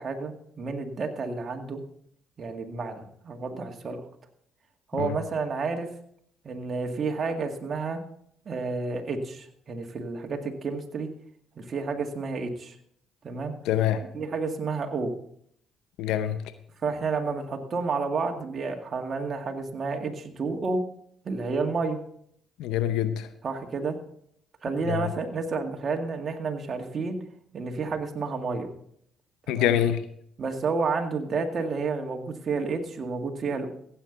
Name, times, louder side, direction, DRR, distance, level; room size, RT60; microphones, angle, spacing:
voice 1, 0.0-1.8 2.4-4.0 4.9-5.9 6.4-8.0 8.5-11.1 11.6-12.8 13.2-13.5 14.1-15.1 16.8-20.8 21.2-22.0 23.4-23.9 24.6-27.2 27.5-28.7 29.5-29.7 30.4-33.7, right 4 dB, 45° right, 2.0 m, -30 dB
voice 2, 13.7-14.0 16.0-16.4 22.6-23.3 24.9-25.1 29.5-30.0, left 11 dB, 80° left, 0.7 m, -25 dB
15.5 x 8.5 x 4.0 m
supercardioid pair, 60°, 0 cm